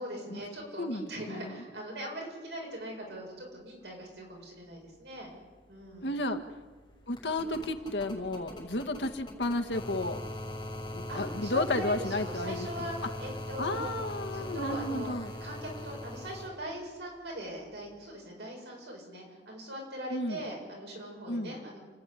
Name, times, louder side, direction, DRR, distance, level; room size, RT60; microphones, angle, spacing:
voice 1, 0.0-5.3 5.7-6.1 11.1-13.9 14.3-15.2 15.4-21.8, right 1 dB, 75° right, -1 dB, 6.9 m, -41 dB
voice 2, 0.8-1.6 6.0-6.4 7.1-10.2 10.9-12.9 13.6-15.3 20.1-20.4 21.3-21.6, left 2 dB, 85° left, 5 dB, 1.6 m, -33 dB
sound 1, 5.3-5.4 5.6-16.5 17.9-18.0, left 1 dB, 25° left, 6.7 m, -41 dB
30.0 x 10.5 x 9.9 m, 1.3 s
head